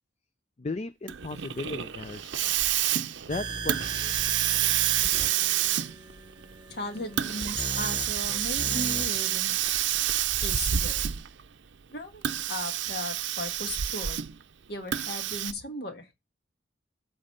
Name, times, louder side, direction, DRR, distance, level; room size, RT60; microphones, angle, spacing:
voice 1, 0.6-2.5 3.3-4.3, left 3 dB, 35° left, 0.4 m, -36 dB
Hiss, 1.1-11.4 12.1-14.4 14.9-15.5, right 11 dB, 70° right, 0.6 m, -28 dB
sound 1, 3.3-9.3, right 4 dB, 25° right, 1.1 m, -37 dB
voice 2, 6.7-9.5 10.4-11.0 11.9-12.2 12.5-14.2 14.7-16.1, left 1 dB, 55° left, 1.5 m, -37 dB
8.7 x 4.0 x 5.5 m
head